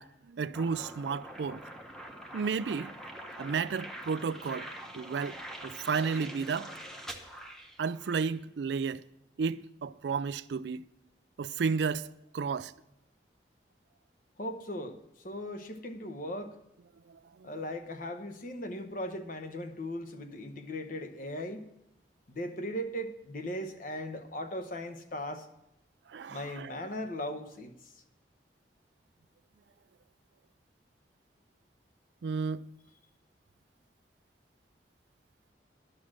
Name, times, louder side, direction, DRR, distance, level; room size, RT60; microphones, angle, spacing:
voice 1, 0.0-1.6 2.3-2.9 3.4-6.7 7.8-9.0 9.4-10.9 11.4-12.1 12.3-12.7 17.1-17.5 26.1-26.7 32.2-32.6, right 5 dB, 70° right, 0.4 m, -33 dB
sound 1, 0.5-8.3, right 1 dB, 5° left, 0.9 m, -45 dB
voice 2, 14.4-16.6 17.4-21.7 22.3-25.5 26.3-27.7, equal, 50° left, 1.0 m, -38 dB
11.0 x 6.3 x 7.4 m
head